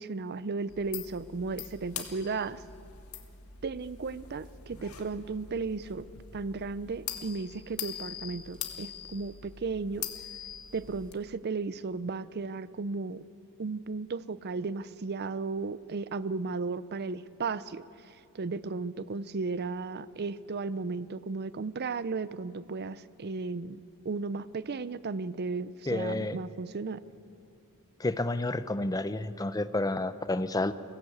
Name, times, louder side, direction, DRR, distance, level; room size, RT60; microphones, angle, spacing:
voice 1, 0.0-2.6 3.6-6.1 6.3-10.1 10.7-13.3 13.6-27.0, right 4 dB, 50° right, 16 dB, 0.5 m, -35 dB
sound 1, 0.7-11.1, left 9 dB, 85° left, 1.8 m, -43 dB
voice 2, 25.9-26.4 28.0-30.7, left 2 dB, 15° left, 13 dB, 0.6 m, -30 dB
22.5 x 17.0 x 8.5 m, 2.6 s
head